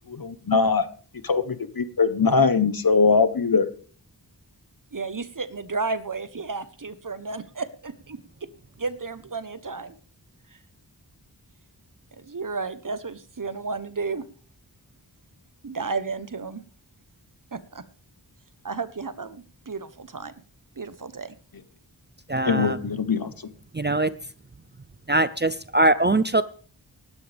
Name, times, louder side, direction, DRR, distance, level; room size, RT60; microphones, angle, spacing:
voice 1, 0.2-0.8 1.2-3.7 22.5-23.3, left 4 dB, 55° left, 13 dB, 1.1 m, -21 dB
voice 2, 4.9-8.5 8.8-10.0 12.2-14.2 15.6-16.6 17.5-17.8 18.6-20.3 20.8-21.3, right 4 dB, 50° right, 13 dB, 1.1 m, -32 dB
voice 3, 22.3-22.8 23.7-24.1 25.1-26.4, right 2 dB, 25° right, 14 dB, 0.6 m, -21 dB
18.5 x 12.5 x 3.5 m, 0.43 s
wide cardioid pair, 50°, 41 cm